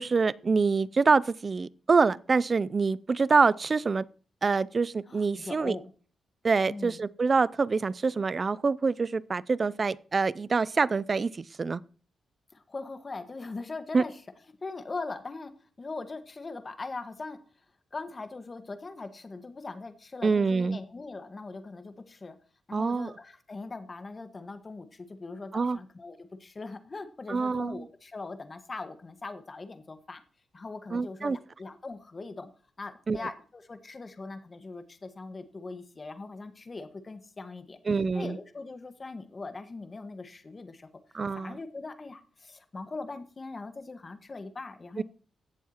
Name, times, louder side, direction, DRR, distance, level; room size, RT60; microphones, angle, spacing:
voice 1, 0.0-4.0 4.4-5.8 6.4-11.8 13.9-14.0 20.2-20.8 22.7-23.1 25.5-25.8 27.3-27.8 30.9-31.4 33.1-33.2 37.9-38.4 41.1-41.6 45.0-45.1, right 4 dB, 45° right, 0.5 m, -26 dB
voice 2, 5.1-5.9 6.7-7.0 12.5-14.2 14.6-15.5 15.8-17.4 17.9-22.4 22.7-30.2 30.5-32.5 32.8-37.8 38.1-40.9 41.3-45.0, left 3 dB, 35° left, 1.5 m, -41 dB
16.5 x 7.2 x 3.0 m
cardioid pair, 65°, 0 cm